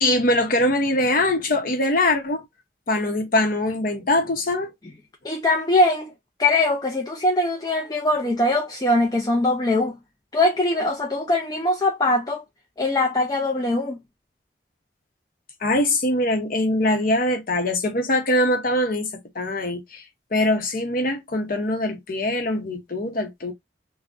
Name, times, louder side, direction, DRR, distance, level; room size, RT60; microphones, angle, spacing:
voice 1, 0.0-2.4 2.9-4.7 15.6-19.1 19.4-20.0 20.3-23.5, left 1 dB, 50° left, 0.7 m, -22 dB
voice 2, 5.2-6.1 6.4-10.0 10.3-12.4 12.8-14.0, left 2 dB, 20° left, 0.4 m, -21 dB
2.5 x 2.1 x 3.4 m
head